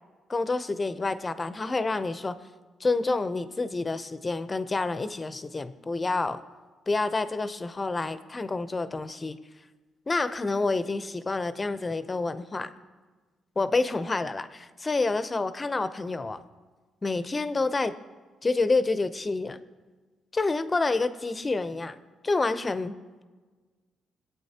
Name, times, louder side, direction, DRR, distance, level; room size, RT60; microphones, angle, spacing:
voice 1, 0.3-2.4 2.8-6.4 6.9-9.4 10.1-12.7 13.6-16.4 17.0-17.9 18.4-19.6 20.3-22.0 22.2-23.0, left 3 dB, 25° left, 12 dB, 0.6 m, -28 dB
20.5 x 8.6 x 2.9 m, 1.4 s
cardioid pair, 90°, 0 cm